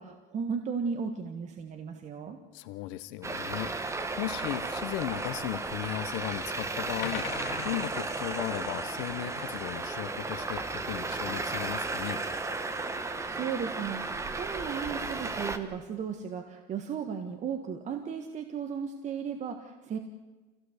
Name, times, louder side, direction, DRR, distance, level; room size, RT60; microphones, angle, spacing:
voice 1, 0.0-2.4 12.9-20.0, right 6 dB, 35° right, 5 dB, 1.5 m, -35 dB
voice 2, 2.5-12.2, left 15 dB, 80° left, 12 dB, 1.0 m, -36 dB
Traffic noise roadway noise, 3.2-15.6, right 3 dB, 15° right, 1.3 m, -34 dB
sound 1, 4.4-4.5 5.9-6.1 6.7-6.8 7.0-11.5 12.1-13.2, left 11 dB, 60° left, 1.7 m, -45 dB
27.0 x 17.0 x 8.1 m, 1.2 s
cardioid pair, 155°, 21 cm